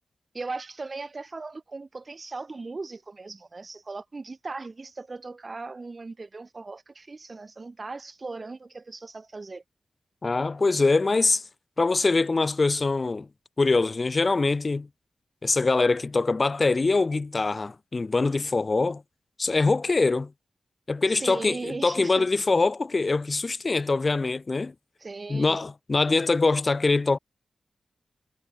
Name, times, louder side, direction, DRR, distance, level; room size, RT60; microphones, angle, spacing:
voice 1, 0.3-9.6 21.2-22.3 25.0-25.6, right 3 dB, 45° right, 0.9 m, -38 dB
voice 2, 10.2-11.4 11.8-13.3 13.6-14.9 15.4-19.0 19.4-20.3 20.9-24.7 25.3-27.2, left 3 dB, 45° left, 0.5 m, -23 dB
cardioid pair, 55°, 0 cm